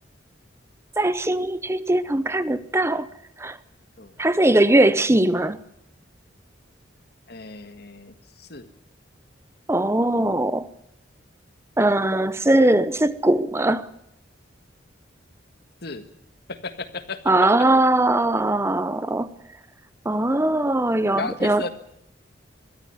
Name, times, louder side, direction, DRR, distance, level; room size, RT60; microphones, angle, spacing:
voice 1, 1.0-3.1 3.4-3.6 4.2-5.6 9.7-10.7 11.8-13.9 17.3-19.3 20.0-21.7, right 1 dB, 15° right, 0.8 m, -20 dB
voice 2, 7.3-8.7 15.8-16.1 16.5-17.5 20.8-21.7, left 3 dB, 55° left, 1.8 m, -35 dB
23.0 x 13.5 x 9.5 m
head